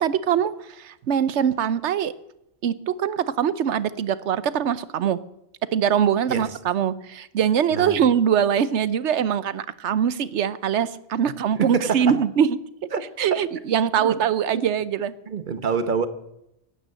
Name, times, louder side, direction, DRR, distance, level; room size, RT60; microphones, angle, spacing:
voice 1, 0.0-2.1 2.6-5.2 5.7-12.6 13.2-15.1, right 8 dB, 75° right, 1.1 m, -23 dB
voice 2, 11.6-12.2 12.9-13.0 13.3-13.4 14.0-14.2 14.5-14.6 15.3-16.1, right 6 dB, 45° right, 1.2 m, -26 dB
17.5 x 9.2 x 7.6 m
omnidirectional pair, 1.2 m